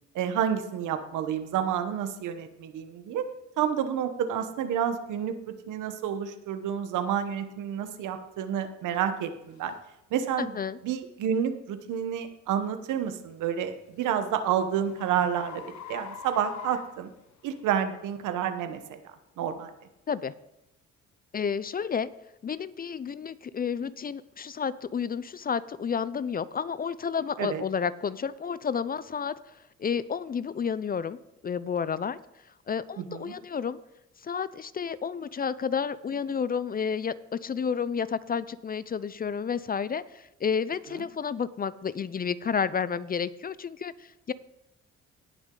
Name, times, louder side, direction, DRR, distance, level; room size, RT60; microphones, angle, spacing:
voice 1, 0.1-3.3 3.6-9.7 10.1-10.5 10.8-15.6 15.9-17.1 17.4-19.0 19.4-19.7 27.4-27.6 33.1-33.3, right 9 dB, 85° right, 9 dB, 1.0 m, -29 dB
sound 1, 8.9-9.0 9.6-9.8 10.4-10.6 13.3-17.7, left 8 dB, 70° left, 1.1 m, -45 dB
voice 2, 10.4-10.8 20.1-20.3 21.3-22.1 22.4-31.2 31.4-32.2 32.7-33.8 34.2-44.3, left 6 dB, 30° left, 17 dB, 0.4 m, -31 dB
18.0 x 6.2 x 3.8 m, 0.86 s
cardioid pair, 90°, 30 cm